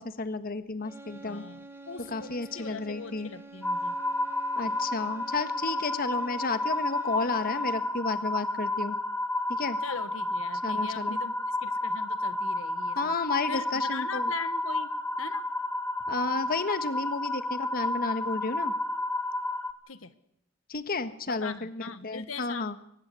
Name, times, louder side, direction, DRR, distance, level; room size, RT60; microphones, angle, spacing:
voice 1, 0.0-1.4 2.1-3.3 4.6-9.0 9.5-9.8 10.6-11.2 13.0-14.3 16.1-18.7 20.7-22.8, left 3 dB, 45° left, 11 dB, 1.4 m, -32 dB
sound 1, 0.8-8.0, right 2 dB, 10° right, 1.5 m, -49 dB
voice 2, 1.2-3.9 9.8-13.1 13.5-14.9 15.2-15.4 19.9-20.1 21.3-22.8, left 5 dB, 85° left, 13 dB, 1.3 m, -41 dB
sound 2, 3.6-19.7, left 1 dB, 10° left, 1.7 m, -31 dB
23.5 x 19.5 x 8.2 m, 0.72 s
head